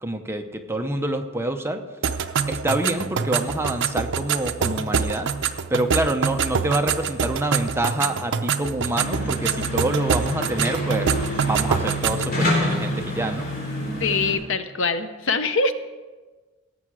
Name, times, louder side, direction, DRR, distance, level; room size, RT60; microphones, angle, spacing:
voice 1, 0.0-1.8 2.5-5.3 5.7-11.1 11.4-13.5, right 1 dB, 10° right, 5 dB, 0.7 m, -26 dB
sound 1, 2.0-12.4, right 6 dB, 60° right, 0.6 m, -26 dB
sound 2, 8.9-14.3, equal, 45° left, 3.8 m, -27 dB
voice 2, 14.0-15.7, left 4 dB, 65° left, 10 dB, 0.7 m, -23 dB
17.5 x 7.5 x 4.8 m, 1.3 s
head